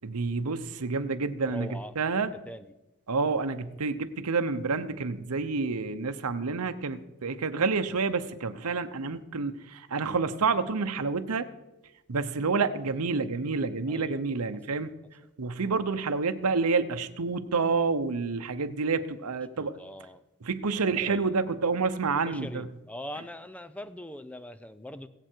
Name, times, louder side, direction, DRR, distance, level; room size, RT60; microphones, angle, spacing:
voice 1, 0.0-2.3 3.1-11.5 12.1-14.9 15.4-19.8 20.4-22.7 23.2-23.3, right 4 dB, 90° right, 9 dB, 0.8 m, -29 dB
voice 2, 1.5-1.9 2.5-2.6 13.9-14.1 19.6-20.2 20.9-21.3 22.3-25.1, equal, 5° left, 12 dB, 0.5 m, -41 dB
20.5 x 7.8 x 4.5 m, 0.99 s
head